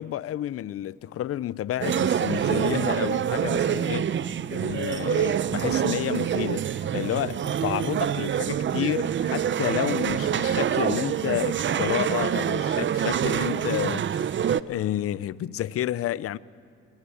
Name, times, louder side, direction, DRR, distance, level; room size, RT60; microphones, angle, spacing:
voice 1, 0.0-4.1 4.5-16.4, left 12 dB, 50° left, 0.5 m, -30 dB
sound 1, 1.8-14.6, right 9 dB, 40° right, 0.5 m, -26 dB
21.0 x 17.0 x 8.4 m
cardioid pair, 90°, 30 cm